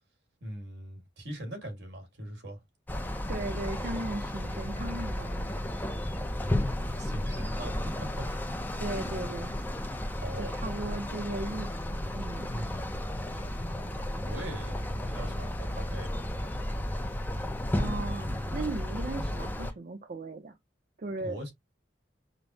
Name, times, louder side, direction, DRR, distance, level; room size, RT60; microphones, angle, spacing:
voice 1, 0.4-2.6 6.9-8.3 10.2-10.5 12.5-12.9 14.3-14.8 15.1-16.1 21.2-21.5, right 1 dB, 70° right, 1.9 m, -40 dB
sound 1, 2.9-19.7, left 1 dB, 10° left, 0.4 m, -33 dB
voice 2, 3.3-5.6 8.8-9.6 10.4-12.6 17.7-20.6 21.0-21.5, right 2 dB, 45° right, 0.5 m, -37 dB
5.1 x 2.0 x 2.7 m
head